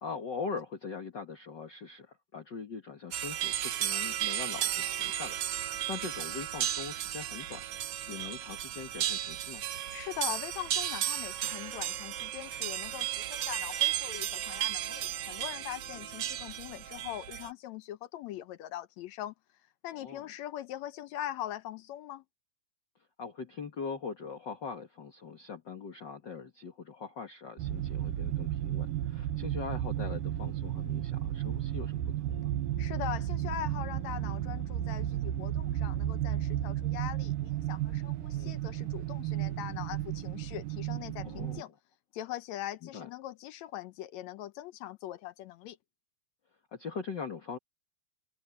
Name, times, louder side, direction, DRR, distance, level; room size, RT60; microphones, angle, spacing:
voice 1, 0.0-9.7 15.9-16.0 20.0-20.2 23.2-32.5 38.3-38.6 41.2-41.7 42.8-43.1 46.7-47.6, left 5 dB, 45° left, 1.7 m, -42 dB
sound 1, 3.1-17.5, right 12 dB, 65° right, 1.4 m, -34 dB
voice 2, 9.9-19.3 19.8-22.2 32.8-41.7 42.1-45.8, left 12 dB, 75° left, 1.7 m, -41 dB
sound 2, 27.6-41.6, right 12 dB, 90° right, 2.7 m, -33 dB
omnidirectional pair, 3.8 m